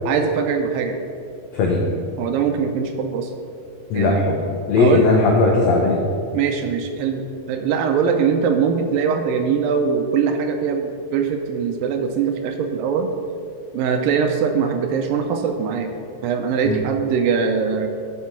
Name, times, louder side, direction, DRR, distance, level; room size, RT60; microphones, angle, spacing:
voice 1, 0.1-1.0 2.2-3.3 3.9-4.2 4.8-5.0 6.3-13.1 13.7-15.9 16.2-17.9, right 6 dB, 80° right, 5 dB, 2.2 m, -22 dB
voice 2, 1.5-1.9 3.9-4.4 4.7-6.0 16.7-16.8, left 3 dB, 80° left, -1 dB, 1.5 m, -17 dB
12.5 x 4.7 x 5.8 m, 2.4 s
omnidirectional pair, 4.3 m